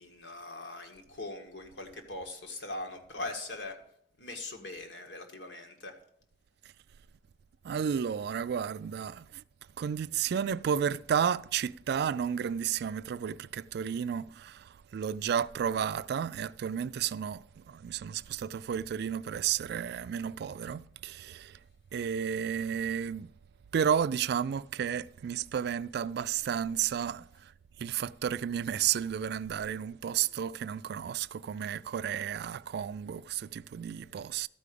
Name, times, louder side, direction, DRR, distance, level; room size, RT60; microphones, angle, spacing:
voice 1, 0.0-3.8 4.2-6.0, left 2 dB, 80° left, 1.6 m, -41 dB
voice 2, 7.6-9.4 9.8-21.6 21.9-23.3 23.7-27.5 27.8-34.5, right 8 dB, 65° right, 0.3 m, -32 dB
13.0 x 4.9 x 6.7 m
head